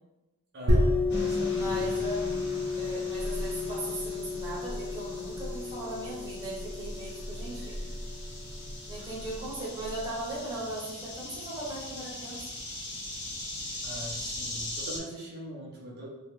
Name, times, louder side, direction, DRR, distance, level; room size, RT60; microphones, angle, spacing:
voice 1, 0.5-1.9 13.8-16.1, right 1 dB, 45° right, -5 dB, 0.6 m, -41 dB
sound 1, 0.7-10.0, left 2 dB, 85° right, 0.8 m, -31 dB
sound 2, 1.1-15.0, left 1 dB, 50° left, 0.9 m, -41 dB
voice 2, 1.5-2.2 2.7-7.8 8.9-12.4, right 1 dB, 15° right, -6 dB, 0.9 m, -38 dB
3.0 x 2.8 x 3.2 m, 1.0 s
head